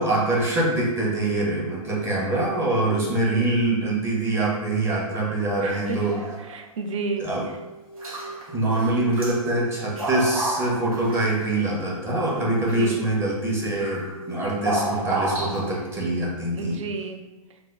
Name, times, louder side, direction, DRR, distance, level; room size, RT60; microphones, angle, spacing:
voice 1, 0.0-6.1 7.2-7.4 8.5-16.8, right 2 dB, 15° right, -5 dB, 0.7 m, -24 dB
voice 2, 3.0-3.5 5.6-6.0 6.5-7.3 12.6-13.0 16.5-17.2, right 4 dB, 60° right, 5 dB, 0.4 m, -32 dB
sound 1, 5.9-6.6 6.9-7.0 8.0-8.5 8.8-9.4 9.8-11.5 12.0-12.8 13.8-14.2 14.6-15.9, right 1 dB, 75° right, 0.9 m, -31 dB
sound 2, 7.3-15.5, right 2 dB, 45° left, 0.4 m, -42 dB
2.8 x 2.0 x 3.5 m, 1.1 s
figure-of-eight pair, 105°, 18 cm